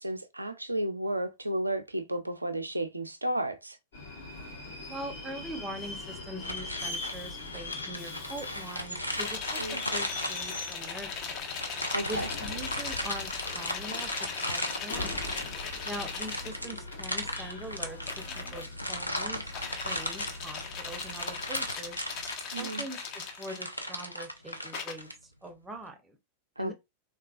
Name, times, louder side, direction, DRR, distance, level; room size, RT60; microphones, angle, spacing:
voice 1, 0.0-3.8 9.6-9.8 11.9-12.3 22.5-22.8 26.6-26.7, right 1 dB, 85° right, 0.4 m, -32 dB
Subway metro underground, 3.9-22.4, left 3 dB, 60° left, 1.2 m, -42 dB
voice 2, 4.9-11.4 12.0-15.2 15.8-22.0 22.6-26.2 26.6-26.7, right 1 dB, 10° right, 0.6 m, -43 dB
sound 1, 6.4-10.8 11.6-25.1, equal, 90° left, 0.4 m, -37 dB
sound 2, 9.2-16.6 17.9-18.7 19.2-23.9 24.7-24.9, left 6 dB, 40° left, 0.6 m, -39 dB
3.5 x 2.3 x 2.4 m
figure-of-eight pair, 90°, 0 cm